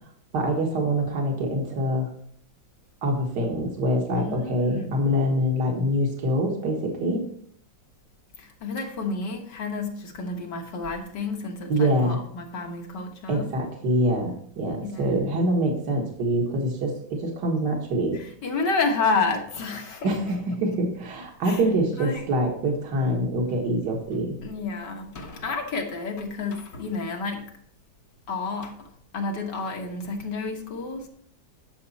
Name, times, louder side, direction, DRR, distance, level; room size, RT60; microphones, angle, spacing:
voice 1, 0.3-2.1 3.0-7.2 11.7-12.2 13.3-18.2 20.0-24.4, equal, 65° right, 2.2 m, -25 dB
voice 2, 4.2-5.0 8.4-13.5 14.8-15.3 18.1-20.1 21.5-21.6 22.0-22.3 24.4-27.5 28.3-28.9 29.1-31.1, left 4 dB, 65° left, 2.0 m, -30 dB
11.5 x 6.8 x 4.2 m
omnidirectional pair, 2.0 m